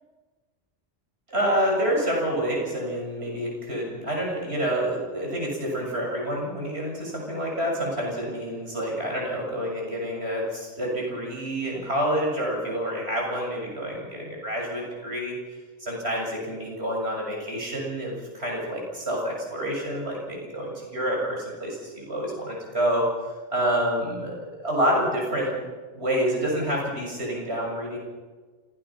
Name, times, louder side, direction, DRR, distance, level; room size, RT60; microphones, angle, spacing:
voice 1, 1.3-15.3 15.8-24.3 24.6-25.5 25.9-28.0, equal, 80° right, -2 dB, 7.3 m, -28 dB
27.5 x 17.0 x 5.8 m, 1.4 s
omnidirectional pair, 1.1 m